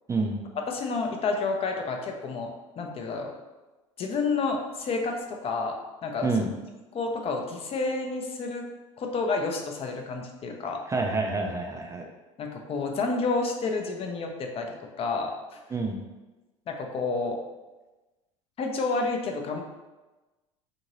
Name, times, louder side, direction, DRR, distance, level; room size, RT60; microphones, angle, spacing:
voice 1, 0.7-3.3 4.0-6.3 6.9-8.7 9.0-10.8 12.4-15.6 16.7-17.4 18.6-19.6, left 3 dB, 35° left, 3 dB, 0.5 m, -30 dB
voice 2, 10.9-12.0 15.7-16.0, right 3 dB, 20° right, 2 dB, 0.3 m, -27 dB
2.7 x 2.6 x 3.0 m, 1.1 s
hypercardioid pair, 80°, 16 cm